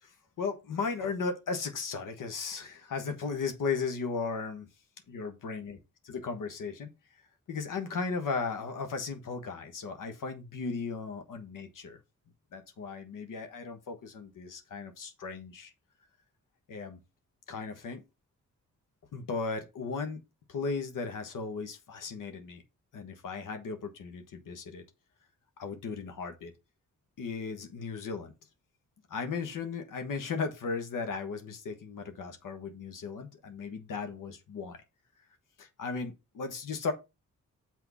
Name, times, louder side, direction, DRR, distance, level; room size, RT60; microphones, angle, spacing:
voice 1, 0.0-4.7 5.1-5.8 6.0-6.9 7.5-12.0 12.5-15.7 16.7-17.0 17.5-18.0 19.1-20.2 20.5-22.6 22.9-24.8 25.6-26.5 27.2-28.3 29.1-34.8 35.6-36.9, left 4 dB, 80° left, 1.3 m, -36 dB
6.2 x 4.4 x 5.4 m
cardioid pair, 85°, 31 cm